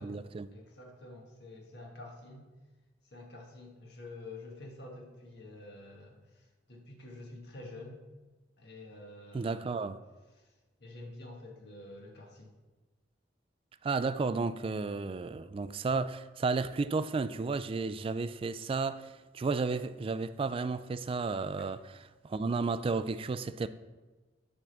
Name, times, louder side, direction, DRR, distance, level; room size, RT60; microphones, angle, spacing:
voice 1, 0.0-0.5 9.3-10.0 13.8-23.7, right 4 dB, 30° right, 0.3 m, -33 dB
voice 2, 0.5-2.5 3.0-8.0 8.6-9.9 10.3-10.5 10.8-12.5, left 2 dB, 65° left, 1.6 m, -48 dB
7.5 x 3.6 x 6.5 m
head